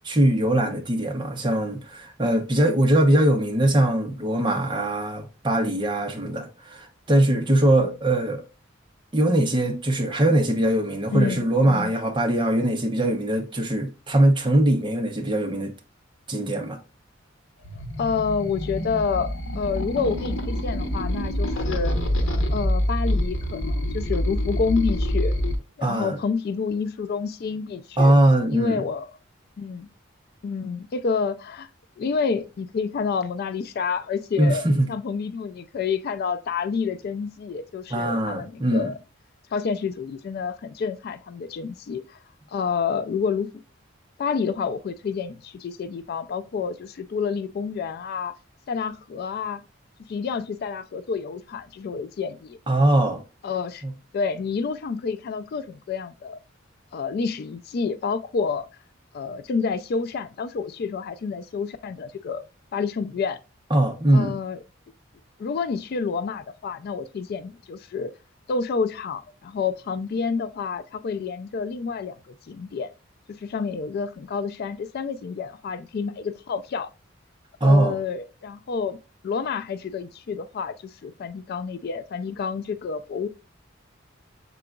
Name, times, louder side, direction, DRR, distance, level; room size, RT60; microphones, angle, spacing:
voice 1, 0.0-8.4 9.1-15.7 16.3-16.8 25.8-26.2 28.0-28.8 34.4-34.9 37.9-38.9 52.7-53.2 53.8-53.9 63.7-64.4 77.6-78.0, right 1 dB, 25° right, 0.7 m, -21 dB
voice 2, 11.1-11.9 18.0-21.9 22.5-25.3 25.8-28.2 28.5-29.1 29.6-29.9 30.4-31.7 32.0-39.0 39.5-42.2 42.5-43.5 44.2-48.3 48.7-49.6 50.1-52.6 53.4-53.8 54.1-56.4 56.9-58.7 59.1-62.4 62.7-63.4 64.1-64.6 65.4-68.1 68.5-72.9 73.3-76.9 77.6-79.0 79.2-83.3, left 5 dB, 50° left, 0.3 m, -29 dB
sound 1, 17.6-25.5, equal, 80° left, 0.8 m, -26 dB
6.0 x 3.8 x 2.2 m
head